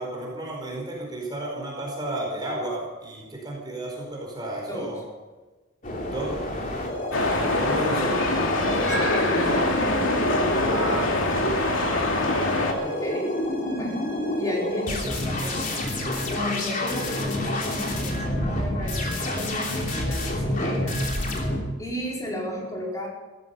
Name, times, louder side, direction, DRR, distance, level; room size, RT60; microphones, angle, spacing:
voice 1, 0.0-5.0 6.0-6.4 6.7-8.1 10.7-12.2 12.4-12.9, right 1 dB, 20° right, -2 dB, 4.7 m, -33 dB
voice 2, 4.7-5.0 7.7-9.9 12.8-13.3 13.8-14.0 14.3-21.0 21.4-23.1, equal, 15° left, -3 dB, 4.7 m, -34 dB
sound 1, 5.8-21.6, left 1 dB, 40° left, 3.2 m, -28 dB
sound 2, 7.1-12.7, left 2 dB, 75° left, 2.6 m, -24 dB
16.5 x 14.0 x 5.7 m, 1.2 s
head